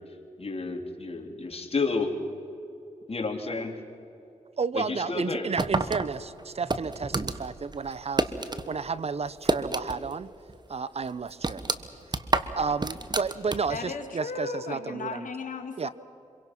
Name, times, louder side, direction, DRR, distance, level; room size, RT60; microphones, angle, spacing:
voice 1, 0.0-2.1 3.1-3.8 4.7-5.6, left 3 dB, 45° left, 3 dB, 3.2 m, -31 dB
voice 2, 4.6-10.3 10.7-11.7 12.6-15.3 15.8-15.9, right 5 dB, 50° right, 18 dB, 0.7 m, -32 dB
sound 1, 5.6-8.7 9.0-10.2 10.5-10.6 11.0-13.9, right 3 dB, 30° right, 1.3 m, -29 dB
voice 3, 13.7-15.9, left 5 dB, 70° left, 6 dB, 2.2 m, -35 dB
25.5 x 23.0 x 6.0 m, 2.7 s
cardioid pair, 55°, 14 cm